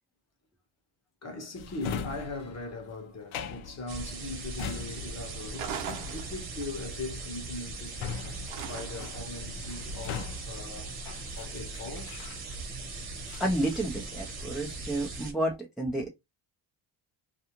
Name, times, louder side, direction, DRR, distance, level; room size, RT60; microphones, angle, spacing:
voice 1, 1.2-5.8 6.0-8.0 8.6-11.0 11.3-12.2, left 2 dB, 35° left, 0.9 m, -40 dB
Drawer open or close, 1.6-12.8 13.3-14.5 14.9-15.4, left 6 dB, 80° left, 0.7 m, -42 dB
sound 1, 3.9-15.3, right 3 dB, 50° right, 1.0 m, -39 dB
Scooter Fall Over Impact Fiberglass Asphalt, 5.5-6.8 8.5-9.2, right 7 dB, 90° right, 0.7 m, -39 dB
voice 2, 13.4-16.1, right 1 dB, ahead, 0.4 m, -30 dB
2.5 x 2.3 x 2.9 m
cardioid pair, 115°, 48 cm